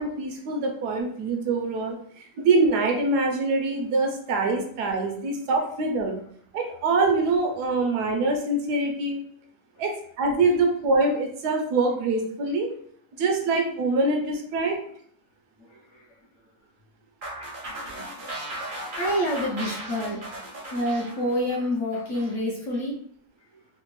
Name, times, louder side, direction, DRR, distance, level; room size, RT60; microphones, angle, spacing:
voice 1, 0.0-6.1 6.5-9.2 9.8-12.7 13.2-14.8, right 3 dB, 80° right, 2 dB, 1.2 m, -24 dB
voice 2, 13.1-14.0 15.6-16.2 17.8-23.0 23.5-23.6, equal, 60° left, -3 dB, 0.9 m, -30 dB
sound 1, 17.2-22.4, right 1 dB, 50° right, 0.6 m, -37 dB
3.3 x 2.1 x 3.0 m, 0.64 s
omnidirectional pair, 1.7 m